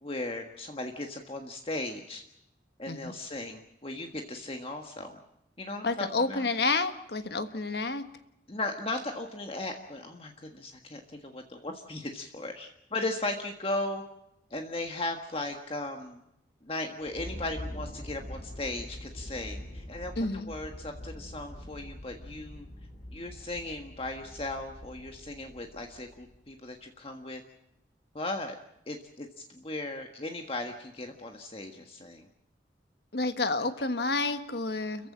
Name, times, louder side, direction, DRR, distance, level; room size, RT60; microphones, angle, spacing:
voice 1, 0.0-2.2 2.8-5.2 5.6-6.5 8.5-14.0 14.5-16.2 16.6-22.7 23.1-27.4 28.1-28.6 28.9-32.3, left 2 dB, 30° left, 4 dB, 1.6 m, -37 dB
voice 2, 5.8-8.1 20.2-20.5 33.1-35.1, left 3 dB, 65° left, 9 dB, 1.4 m, -30 dB
sound 1, 17.0-26.6, left 1 dB, 50° left, 4.3 m, -44 dB
30.0 x 15.5 x 7.4 m, 0.82 s
head